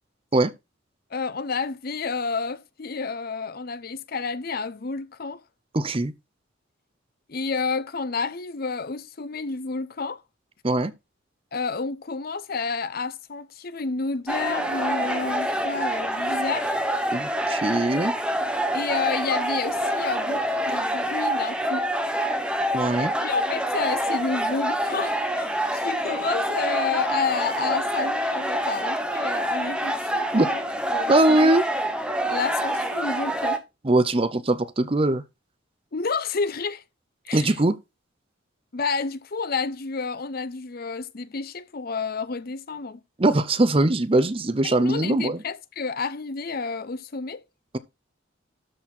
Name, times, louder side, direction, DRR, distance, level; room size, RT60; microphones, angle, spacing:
voice 1, 1.1-5.4 7.3-10.2 11.5-16.8 18.7-21.9 23.2-31.5 32.3-33.6 35.9-36.8 37.2-37.5 38.7-43.0 44.6-47.4, left 4 dB, 50° left, 0.7 m, -30 dB
voice 2, 5.7-6.1 10.6-10.9 17.1-18.1 22.7-23.1 30.3-30.5 31.1-31.6 33.8-35.2 37.3-37.8 43.2-45.4, right 2 dB, 30° right, 0.7 m, -21 dB
sound 1, 14.3-33.6, equal, 5° right, 1.0 m, -26 dB
13.0 x 4.3 x 4.4 m
head